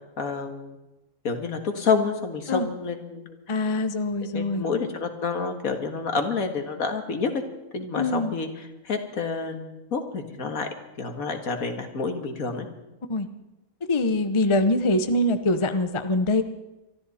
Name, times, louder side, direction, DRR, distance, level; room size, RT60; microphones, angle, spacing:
voice 1, 0.2-0.8 1.2-3.4 4.3-7.3 7.7-10.7 11.0-12.7, left 4 dB, 70° left, 5 dB, 2.1 m, -28 dB
voice 2, 3.5-4.6 8.0-8.3 13.1-13.3 13.9-16.4, left 2 dB, 25° left, 9 dB, 0.7 m, -23 dB
24.0 x 13.5 x 4.2 m, 0.98 s
omnidirectional pair, 1.5 m